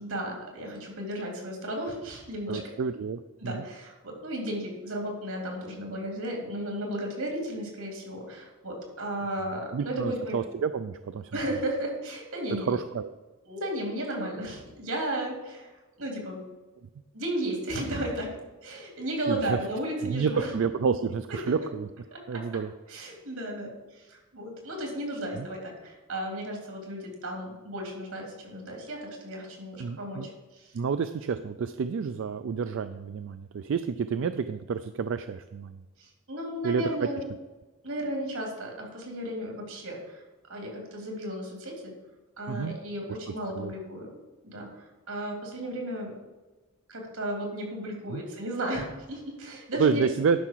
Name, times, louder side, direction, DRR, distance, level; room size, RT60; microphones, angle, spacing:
voice 1, 0.0-2.6 3.4-10.4 11.3-12.8 13.4-15.7 16.0-16.4 17.1-18.3 18.6-20.5 21.3-21.5 22.1-22.4 22.9-30.7 36.0-37.3 37.8-40.2 40.5-41.9 42.4-44.1 44.4-46.1 46.9-50.1, right 1 dB, 85° right, 0 dB, 3.0 m, -34 dB
voice 2, 2.5-3.6 9.7-11.4 12.5-13.1 19.3-19.6 20.0-21.9 22.3-22.7 25.4-25.5 29.8-30.3 30.7-35.8 36.6-37.1 42.5-42.8 43.1-43.2 43.6-43.7 48.1-48.2 49.7-50.4, right 5 dB, 60° right, 11 dB, 0.3 m, -29 dB
11.0 x 5.8 x 4.6 m, 1.2 s
head